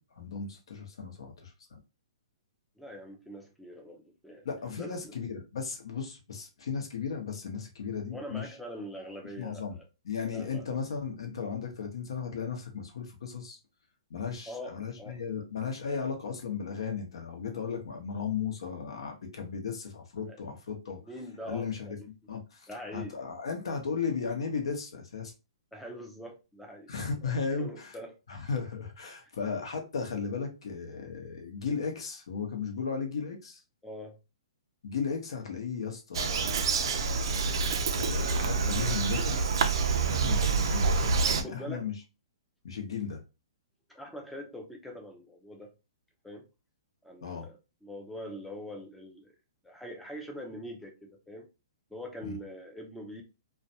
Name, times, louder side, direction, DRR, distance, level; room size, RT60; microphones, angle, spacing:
voice 1, 0.0-1.8 4.4-8.5 9.4-9.8 10.0-13.6 14.1-21.0 21.4-22.0 22.3-25.3 26.9-28.0 28.3-33.6 34.8-37.0 37.9-39.4 40.1-40.9 41.2-41.9 42.6-43.2 47.2-47.5 52.2-52.4, left 5 dB, 75° left, 0.8 m, -35 dB
voice 2, 2.8-4.5 4.8-5.1 8.1-9.9 10.2-10.6 14.5-15.2 20.3-20.4 21.0-21.9 22.7-23.2 25.7-26.9 27.2-28.1 33.8-34.2 41.4-41.9 43.9-45.7 46.2-46.5 47.0-49.3 49.6-51.5 51.9-53.2, equal, 5° left, 0.4 m, -43 dB
Bird vocalization bird call bird song, 36.1-41.4, right 4 dB, 60° right, 0.4 m, -27 dB
2.4 x 2.2 x 2.7 m
hypercardioid pair, 145°, 3 cm